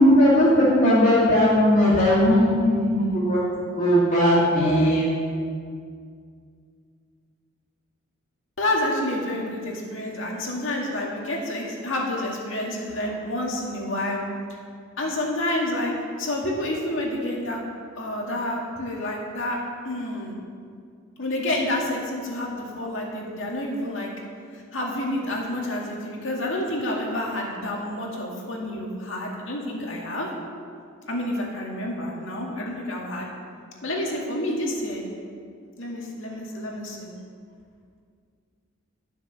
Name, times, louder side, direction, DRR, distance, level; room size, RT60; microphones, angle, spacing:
voice 1, 0.0-3.4 3.8-5.1, equal, 40° left, -8 dB, 2.6 m, -18 dB
voice 2, 8.6-14.2 15.0-15.9 16.2-17.6 17.9-19.6 19.8-20.3 21.2-24.1 24.7-30.3 31.1-33.3 33.8-35.1 35.8-37.1, left 1 dB, 70° left, -1 dB, 2.1 m, -29 dB
12.0 x 7.1 x 6.3 m, 2.2 s
head